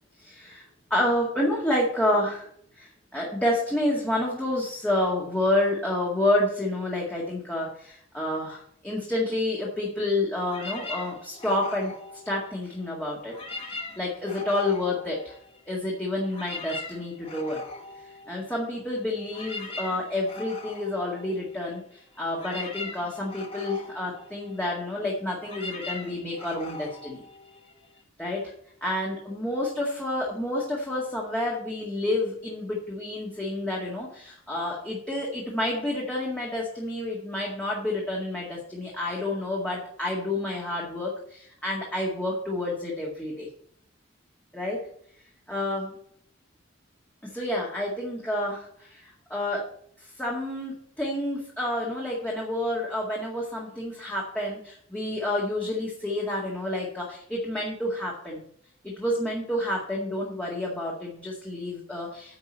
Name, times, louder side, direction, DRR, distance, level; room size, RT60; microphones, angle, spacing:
voice 1, 0.2-0.6 0.9-2.5 2.7-11.9 12.3-15.4 15.7-17.6 18.3-27.2 28.2-28.5 28.8-43.5 44.5-44.8 45.5-45.9 47.2-49.7 50.0-58.4 58.8-62.4, left 1 dB, 10° left, -4 dB, 2.0 m, -29 dB
sound 1, 10.4-12.9 13.2-15.8 16.1-28.0, left 3 dB, 30° left, 1.8 m, -41 dB
9.6 x 5.3 x 7.4 m, 0.64 s
head